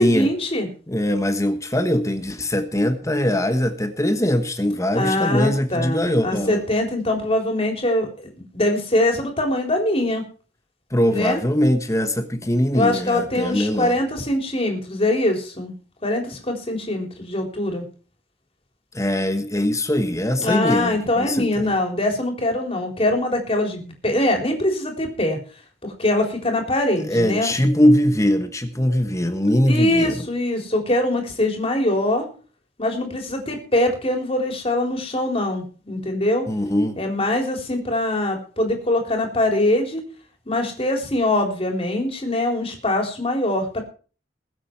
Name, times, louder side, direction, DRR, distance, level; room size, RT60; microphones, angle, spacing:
voice 1, 0.0-0.7 4.9-10.2 11.1-11.4 12.7-15.7 16.0-17.8 20.4-25.4 25.8-27.5 29.7-32.2 32.8-36.4 37.0-40.0 40.5-43.8, left 1 dB, 35° left, 3 dB, 3.8 m, -23 dB
voice 2, 0.9-6.6 10.9-14.0 18.9-21.7 27.0-30.2 36.5-37.0, equal, 20° left, 8 dB, 1.3 m, -21 dB
21.5 x 8.0 x 4.6 m, 0.39 s
head